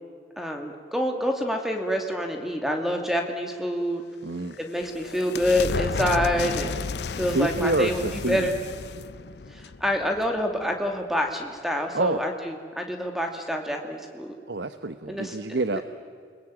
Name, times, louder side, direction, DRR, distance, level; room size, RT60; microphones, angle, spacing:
voice 1, 0.4-4.0 4.6-6.7 7.2-8.5 9.5-14.3 15.1-15.4, equal, ahead, 3 dB, 2.5 m, -27 dB
sound 1, 4.2-10.6, left 4 dB, 75° left, 0.6 m, -33 dB
voice 2, 4.2-4.6 7.2-8.5 11.9-12.2 14.5-15.8, right 2 dB, 85° right, 11 dB, 1.0 m, -27 dB
29.0 x 21.5 x 8.9 m, 2.1 s
head